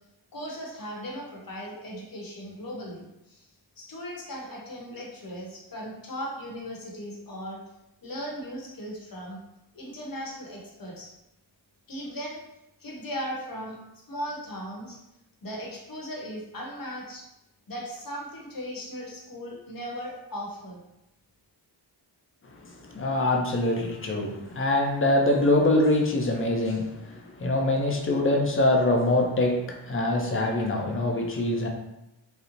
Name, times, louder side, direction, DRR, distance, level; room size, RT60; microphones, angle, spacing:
voice 1, 0.3-3.5 3.8-7.6 8.0-9.4 9.7-11.1 11.9-12.4 12.8-13.8 14.1-15.0 15.4-17.2 17.7-20.8, equal, 45° left, -2 dB, 0.8 m, -37 dB
voice 2, 22.4-31.7, left 1 dB, 30° left, 1 dB, 0.5 m, -24 dB
2.9 x 2.0 x 2.5 m, 0.88 s
wide cardioid pair, 60°, 46 cm